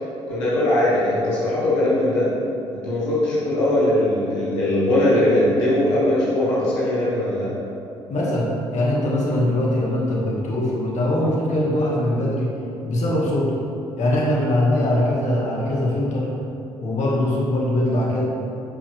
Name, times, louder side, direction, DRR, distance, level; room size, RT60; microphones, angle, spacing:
voice 1, 0.3-2.3 2.7-7.5, left 1 dB, 80° left, -8 dB, 1.7 m, -20 dB
voice 2, 8.1-12.5 12.8-13.5 14.0-16.3 16.8-18.2, left 1 dB, 50° left, -4 dB, 1.9 m, -21 dB
11.0 x 5.8 x 3.5 m, 2.8 s
figure-of-eight pair, 50°, 15 cm